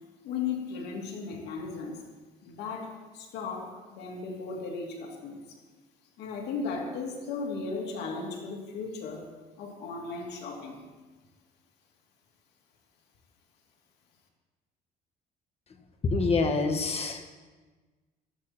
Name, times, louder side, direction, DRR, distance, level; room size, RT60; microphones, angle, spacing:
voice 1, 0.2-2.0 2.4-5.4 6.2-9.3 9.6-10.8, left 4 dB, 80° left, 0 dB, 2.8 m, -36 dB
voice 2, 16.0-17.2, left 3 dB, 35° left, 5 dB, 1.8 m, -26 dB
16.0 x 12.5 x 4.4 m, 1.3 s
cardioid pair, 110°, 17 cm